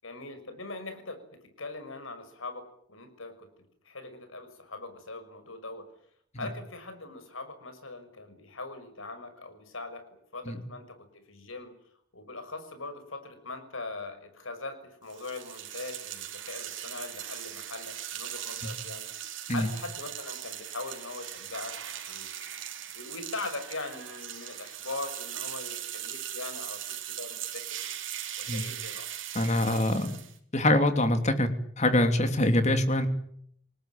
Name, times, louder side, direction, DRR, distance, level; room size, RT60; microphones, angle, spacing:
voice 1, 0.0-3.5 3.8-5.9 6.4-11.7 12.1-19.1 19.5-21.8 22.0-22.3 22.9-26.8 27.2-27.9 28.4-29.1, left 3 dB, 75° left, 9 dB, 6.0 m, -41 dB
sound 1, 15.1-30.4, right 11 dB, 65° right, 4.0 m, -39 dB
voice 2, 29.3-30.2 30.5-31.5 31.8-33.1, left 1 dB, 35° left, 8 dB, 3.0 m, -24 dB
27.5 x 19.5 x 9.1 m, 0.68 s
head